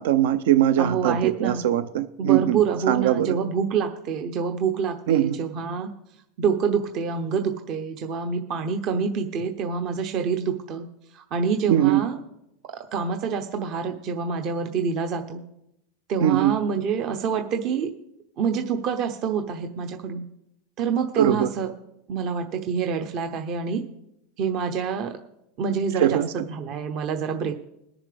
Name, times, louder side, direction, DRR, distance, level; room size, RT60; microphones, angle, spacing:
voice 1, 0.0-2.6 2.9-3.4 5.1-5.4 11.7-12.1 16.2-16.6 21.2-21.5 26.0-26.3, right 12 dB, 80° right, 12 dB, 0.6 m, -21 dB
voice 2, 0.8-1.6 2.2-5.9 6.4-10.9 11.1-12.2 12.7-15.4 16.1-17.9 18.4-20.2 20.8-21.7 22.1-23.8 24.4-25.1 25.6-26.2 26.5-27.5, right 6 dB, 50° right, 5 dB, 0.9 m, -26 dB
21.5 x 7.1 x 3.5 m, 0.84 s
supercardioid pair, 125°, 0 cm